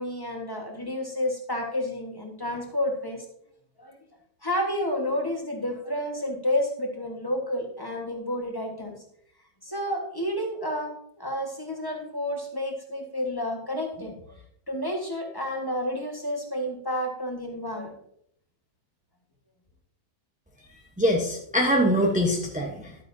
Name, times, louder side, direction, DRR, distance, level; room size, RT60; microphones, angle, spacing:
voice 1, 0.0-3.2 3.8-3.9 4.4-8.9 9.6-14.4 14.7-17.9, left 1 dB, 15° left, 1 dB, 1.3 m, -30 dB
voice 2, 21.0-23.0, equal, 5° right, 0 dB, 0.6 m, -23 dB
11.5 x 9.1 x 2.7 m, 0.72 s
omnidirectional pair, 1.8 m